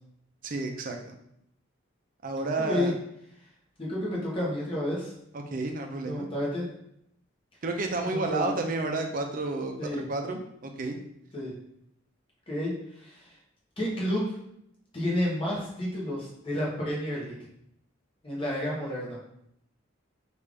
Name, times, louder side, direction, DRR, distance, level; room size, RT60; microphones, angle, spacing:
voice 1, 0.4-1.1 2.2-2.9 5.3-6.3 7.6-11.0, right 2 dB, 45° right, 4 dB, 0.4 m, -31 dB
voice 2, 2.6-2.9 3.8-5.1 6.0-6.7 8.1-8.5 9.8-10.1 11.3-11.5 12.5-13.3 13.8-14.4 14.9-17.3 18.2-19.2, left 1 dB, 25° left, -5 dB, 1.0 m, -30 dB
3.2 x 2.5 x 3.3 m, 0.74 s
head